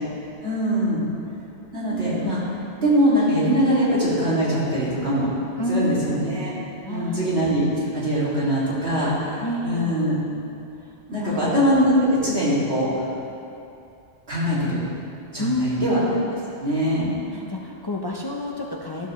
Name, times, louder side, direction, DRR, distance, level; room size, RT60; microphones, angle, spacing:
voice 1, 0.4-1.0 1.7-2.4 2.8-5.3 5.7-6.5 6.9-7.6 7.9-10.2 11.1-13.1 14.3-14.8 15.3-16.0 16.5-17.1, equal, 60° right, -9 dB, 2.6 m, -22 dB
voice 2, 5.6-6.4 6.8-7.3 9.4-10.0 11.2-11.6 12.0-12.1 15.4-16.0 17.3-19.1, left 2 dB, 30° left, -1 dB, 0.4 m, -28 dB
12.5 x 6.6 x 3.1 m, 2.7 s
omnidirectional pair, 1.2 m